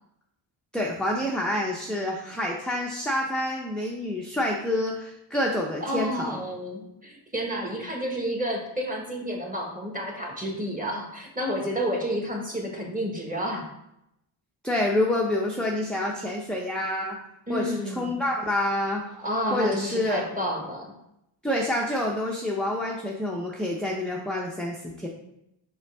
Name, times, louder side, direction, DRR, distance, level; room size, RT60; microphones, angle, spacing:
voice 1, 0.7-6.4 14.6-17.2 17.5-19.1 19.5-20.2 21.4-25.1, left 1 dB, ahead, -2 dB, 0.6 m, -27 dB
voice 2, 5.8-13.7 17.5-18.1 19.2-20.9, equal, 15° right, 0 dB, 1.4 m, -30 dB
5.6 x 5.1 x 3.4 m, 0.82 s
wide cardioid pair, 115°, 48 cm